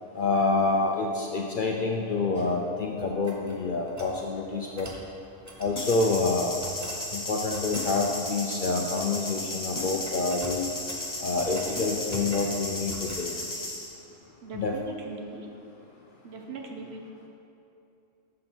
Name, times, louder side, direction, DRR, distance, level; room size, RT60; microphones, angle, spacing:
voice 1, 0.2-4.9 5.6-6.5 7.1-10.7 11.2-13.3 14.5-14.7, left 3 dB, 55° left, 1 dB, 0.6 m, -27 dB
sound 1, 3.0-4.2 4.8-5.0 5.4-6.1 6.6-7.0 7.5-7.9 8.7-9.3 9.6-9.8 10.0-11.7 12.1-12.5 12.9-13.3, right 2 dB, 20° right, 0.6 m, -44 dB
sound 2, 5.8-13.9, left 1 dB, 20° left, 0.8 m, -35 dB
voice 2, 14.4-15.5 16.2-17.0, right 3 dB, 60° right, 2 dB, 0.9 m, -39 dB
7.3 x 6.6 x 4.4 m, 2.8 s
omnidirectional pair, 1.3 m